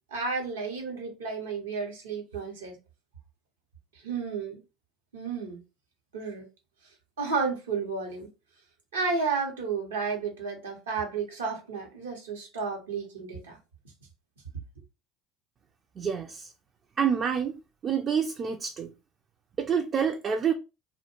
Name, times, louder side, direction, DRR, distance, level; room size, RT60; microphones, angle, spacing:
voice 1, 0.1-2.8 4.0-4.6 5.1-5.6 6.1-6.4 7.2-8.3 8.9-13.6, right 4 dB, 90° right, 0.7 m, -32 dB
voice 2, 16.0-16.5 17.0-18.9 19.6-20.5, right 7 dB, 40° right, 0.3 m, -28 dB
2.2 x 2.1 x 2.9 m
hypercardioid pair, 70°, 0 cm